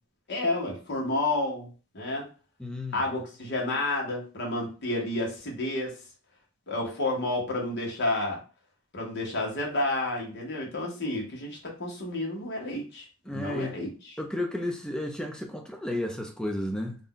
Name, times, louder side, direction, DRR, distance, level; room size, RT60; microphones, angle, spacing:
voice 1, 0.3-1.7 1.9-2.3 2.9-6.0 6.7-8.4 8.9-13.0 13.3-14.1, left 2 dB, 55° left, 0.9 m, -30 dB
voice 2, 2.6-3.0 13.3-13.8 14.2-17.0, left 1 dB, 5° left, 0.4 m, -32 dB
2.5 x 2.2 x 3.7 m
head